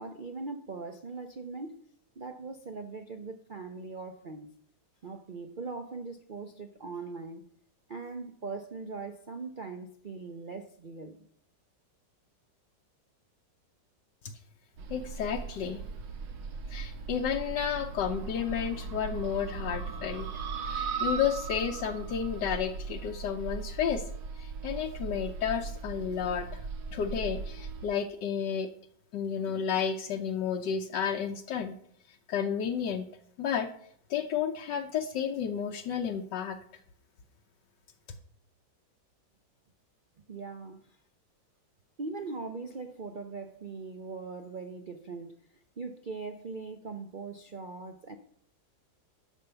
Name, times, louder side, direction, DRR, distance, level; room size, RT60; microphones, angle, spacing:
voice 1, 0.0-1.8 2.2-4.5 5.0-7.4 7.9-11.3 40.3-41.0 42.0-45.4 45.8-48.2, right 4 dB, 65° right, 0.4 m, -40 dB
sound 1, 14.8-27.9, right 5 dB, 85° right, 1.7 m, -38 dB
voice 2, 14.9-15.8 16.7-20.3 20.6-24.0 24.4-26.6 26.9-28.7 29.1-31.8 32.3-33.0 33.4-33.7 34.1-36.6, left 8 dB, 75° left, 1.4 m, -31 dB
11.5 x 5.4 x 6.8 m
omnidirectional pair, 2.0 m